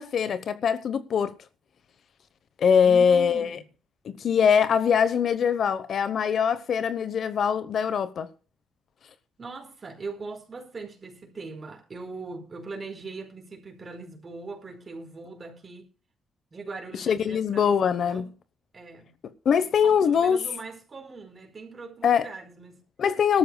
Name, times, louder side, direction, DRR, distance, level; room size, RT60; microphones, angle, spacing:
voice 1, 0.0-1.3 2.6-3.6 4.0-8.3 17.0-18.3 19.4-20.4 22.0-22.3 23.0-23.4, left 7 dB, 60° left, 1.0 m, -22 dB
voice 2, 2.8-3.6 9.4-15.9 16.5-18.3 18.7-19.1 19.5-22.8, right 3 dB, 35° right, 4.6 m, -41 dB
20.5 x 13.5 x 2.3 m
cardioid pair, 90°, 0 cm